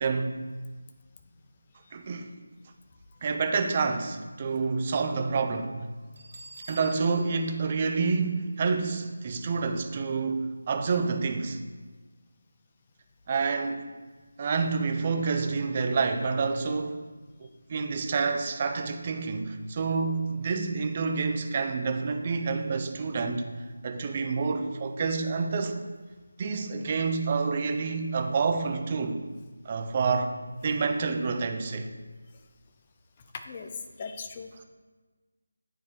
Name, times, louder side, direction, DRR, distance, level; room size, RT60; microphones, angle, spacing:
voice 1, 0.0-0.4 1.9-2.3 3.2-5.8 6.7-11.6 13.3-13.9 14.4-17.1 17.4-23.5 23.8-25.8 26.4-29.2 29.6-30.3 30.6-31.9, right 4 dB, 30° right, 6 dB, 0.5 m, -28 dB
Bell, 6.1-8.9, right 1 dB, 50° right, 1.3 m, -49 dB
voice 2, 33.3-34.5, left 5 dB, 25° left, 6 dB, 0.5 m, -39 dB
9.2 x 4.6 x 3.4 m, 1.3 s
figure-of-eight pair, 160°, 0 cm